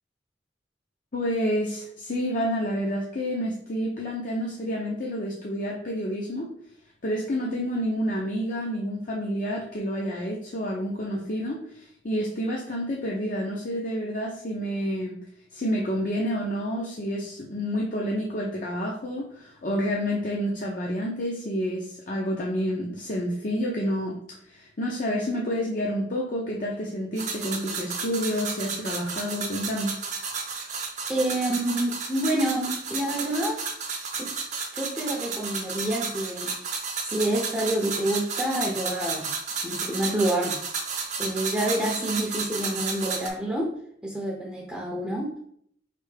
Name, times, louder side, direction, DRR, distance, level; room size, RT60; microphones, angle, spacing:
voice 1, 1.1-6.5 7.0-15.2 15.5-24.2 24.5-30.0, equal, 45° left, -2 dB, 0.6 m, -29 dB
sound 1, 27.2-43.3, right 5 dB, 40° right, 0.7 m, -32 dB
voice 2, 31.1-33.6 34.2-34.3 34.7-36.5 37.0-39.3 39.6-40.8 41.2-43.7 44.0-45.3, right 1 dB, 5° right, -3 dB, 0.6 m, -28 dB
4.6 x 3.3 x 3.3 m, 0.67 s
head